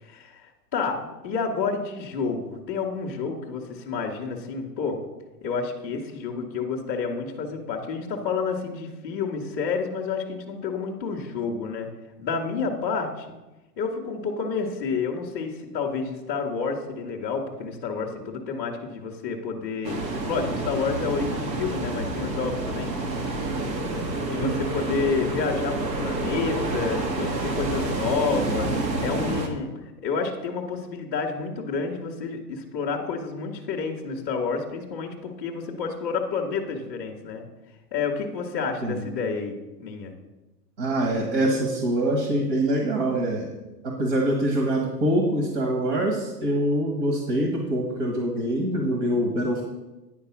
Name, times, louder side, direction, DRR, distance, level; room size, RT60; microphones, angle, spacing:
voice 1, 0.0-5.0 5.4-11.9 12.2-13.3 13.8-20.0 20.3-22.9 24.2-28.7 29.0-29.7 30.0-37.5 37.9-40.1, left 5 dB, 15° left, -9 dB, 0.4 m, -29 dB
sound 1, 19.8-29.5, right 2 dB, 85° right, 1.7 m, -28 dB
voice 2, 40.8-43.5 43.8-49.6, right 1 dB, 45° right, 0 dB, 1.7 m, -24 dB
9.5 x 4.5 x 6.0 m, 1.1 s
hypercardioid pair, 160°, 50 cm